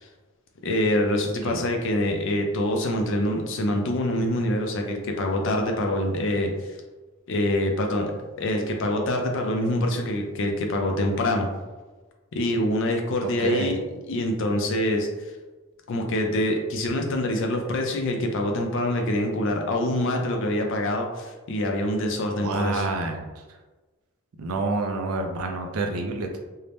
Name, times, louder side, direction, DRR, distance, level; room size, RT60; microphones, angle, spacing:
voice 1, 0.6-6.7 7.3-8.1 8.4-11.5 12.3-13.8 14.1-15.1 15.9-22.9, left 1 dB, 60° left, 3 dB, 0.4 m, -25 dB
voice 2, 13.4-13.8 22.4-23.2 24.4-26.4, right 3 dB, 80° right, 3 dB, 0.4 m, -28 dB
2.7 x 2.1 x 3.2 m, 1.2 s
head